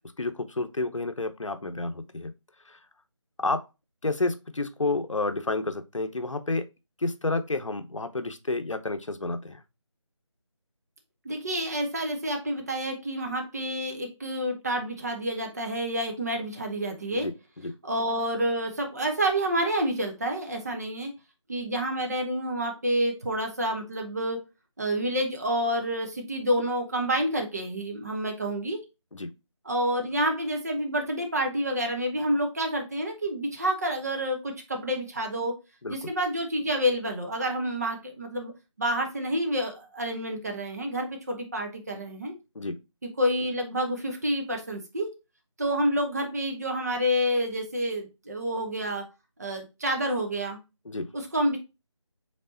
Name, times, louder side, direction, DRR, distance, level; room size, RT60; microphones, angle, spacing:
voice 1, 0.2-2.3 2.7-2.8 3.4-3.6 4.0-6.7 7.0-9.6 17.1-17.3 17.6-17.7 29.1-29.3 35.8-36.0 42.5-42.8 50.9-51.1, left 2 dB, 75° left, 0.7 m, -30 dB
voice 2, 11.2-17.3 17.8-21.1 21.5-24.4 24.8-28.8 29.6-35.6 35.9-38.5 38.8-42.3 43.0-45.1 45.6-49.0 49.4-50.6 51.1-51.6, equal, 30° right, 0.8 m, -28 dB
5.2 x 3.5 x 2.7 m
figure-of-eight pair, 165°, 16 cm